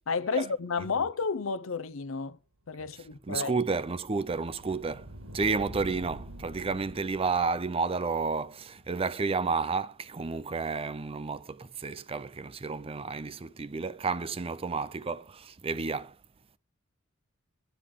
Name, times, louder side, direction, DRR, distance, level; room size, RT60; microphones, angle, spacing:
voice 1, 0.0-2.4 2.7-3.5, left 5 dB, 70° left, 0.6 m, -31 dB
sound 1, 2.9-9.8, right 1 dB, 70° right, 1.8 m, -48 dB
voice 2, 3.2-16.2, right 4 dB, 30° right, 0.5 m, -31 dB
11.5 x 10.0 x 3.7 m
head